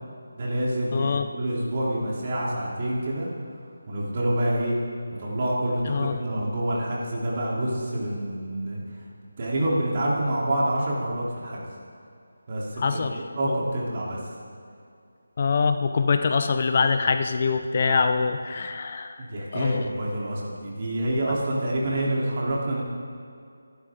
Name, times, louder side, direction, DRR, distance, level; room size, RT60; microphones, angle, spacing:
voice 1, 0.3-3.3 3.9-4.8 5.2-8.8 9.4-11.6 12.5-14.2 19.2-22.8, right 1 dB, 35° right, -5 dB, 3.5 m, -27 dB
voice 2, 0.9-1.3 5.9-6.2 12.8-13.2 13.5-13.6 15.4-19.2 19.5-19.8, left 5 dB, 40° left, 8 dB, 0.6 m, -24 dB
25.0 x 11.5 x 3.8 m, 2.4 s
figure-of-eight pair, 160°, 0 cm